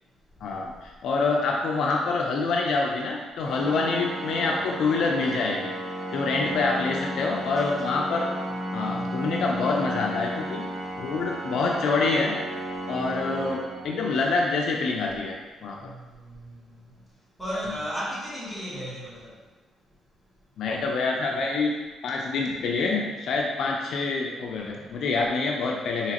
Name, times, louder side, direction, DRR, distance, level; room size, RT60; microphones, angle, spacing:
voice 1, 0.4-5.8 6.1-8.3 8.7-10.7 11.0-12.4 12.9-15.8 20.6-21.7 22.0-26.1, left 3 dB, 70° left, 0 dB, 0.4 m, -26 dB
Organ, 3.4-14.4, equal, 45° right, 0.8 m, -34 dB
voice 2, 7.4-8.0 8.8-9.4 12.8-13.4 15.8-19.5 24.9-25.0, equal, ahead, -9 dB, 1.4 m, -37 dB
4.8 x 2.8 x 2.9 m, 1.3 s
cardioid pair, 90°, 0 cm